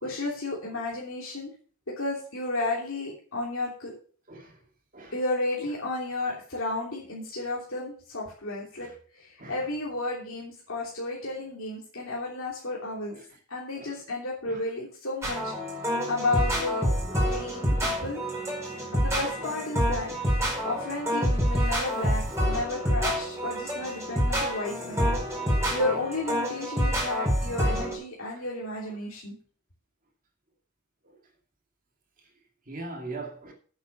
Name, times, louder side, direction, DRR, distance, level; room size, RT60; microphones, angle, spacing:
voice 1, 0.0-1.5 2.0-3.9 5.1-8.9 9.2-13.1 13.5-15.5 16.1-16.9 17.3-18.2 18.9-20.1 20.6-25.1 25.7-29.4, left 2 dB, 65° left, 3.2 m, -32 dB
sound 1, 15.2-27.9, equal, 15° right, 4.8 m, -27 dB
voice 2, 32.7-33.5, right 2 dB, 40° right, 2.4 m, -42 dB
8.5 x 8.5 x 6.7 m
head